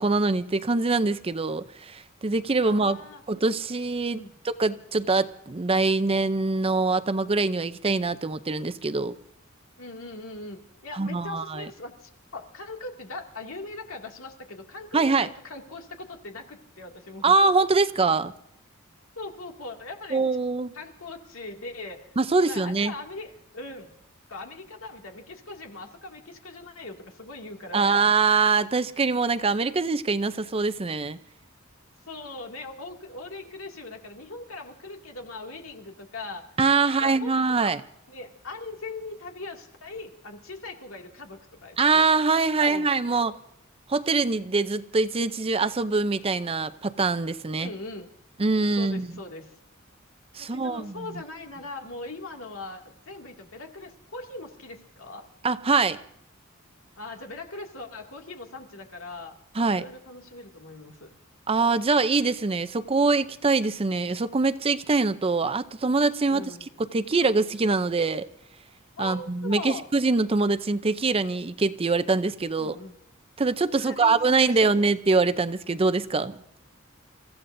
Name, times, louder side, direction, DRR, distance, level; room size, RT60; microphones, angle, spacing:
voice 1, 0.0-3.0 3.3-9.1 11.0-11.7 14.9-15.3 17.2-18.3 20.1-20.7 22.2-22.9 27.7-31.2 36.6-37.8 41.8-43.3 43.9-47.7 48.4-49.1 50.4-51.1 55.4-56.0 59.6-59.8 61.5-66.4 66.9-68.3 69.0-72.7 73.4-76.4, right 3 dB, 30° right, 0.6 m, -24 dB
voice 2, 2.6-3.2 4.1-4.3 9.8-17.4 19.2-20.2 20.7-22.1 22.4-23.9 24.3-28.1 32.1-36.4 36.8-37.8 38.1-42.0 42.5-43.2 47.6-48.1 48.8-49.5 50.4-55.2 57.0-59.3 59.7-61.1 66.3-66.8 68.9-69.9 72.6-72.9 73.7-74.8, left 2 dB, 85° left, 2.3 m, -40 dB
29.0 x 15.0 x 2.6 m
head